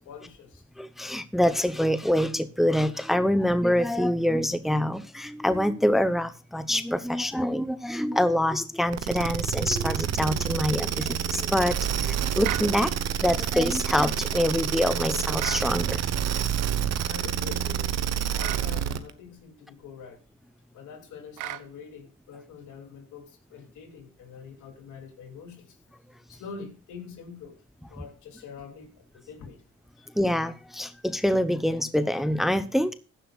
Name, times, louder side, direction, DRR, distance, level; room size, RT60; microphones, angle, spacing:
voice 1, 0.0-0.6 17.1-17.9 18.3-20.2 20.7-25.8 26.3-27.6 27.9-29.6 30.0-30.1, left 6 dB, 80° left, 2.9 m, -44 dB
voice 2, 0.8-12.9 13.2-16.0 30.2-32.9, left 1 dB, ahead, 0.8 m, -25 dB
sound 1, 8.9-19.1, right 9 dB, 60° right, 1.1 m, -28 dB
sound 2, 12.4-12.7 15.4-15.7 18.4-18.7 21.4-21.7, right 16 dB, 85° right, 0.6 m, -33 dB
15.5 x 11.0 x 2.4 m
cardioid pair, 90°, 30 cm